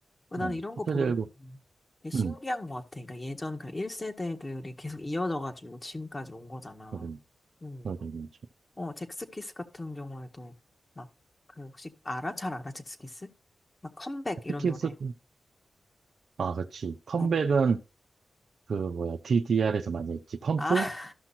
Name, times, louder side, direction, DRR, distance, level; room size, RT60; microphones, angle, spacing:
voice 1, 0.3-1.1 1.4-1.6 2.0-7.1 7.6-7.9 8.8-10.5 11.0-11.1 11.6-13.3 14.0-14.9 17.2-17.4 20.6-21.1, left 1 dB, 30° left, 1.8 m, -36 dB
voice 2, 0.9-1.2 2.1-2.4 6.9-7.2 7.8-8.3 14.6-15.1 16.4-17.8 18.7-20.9, right 5 dB, 75° right, 0.8 m, -28 dB
14.0 x 5.9 x 2.8 m
cardioid pair, 45°, 0 cm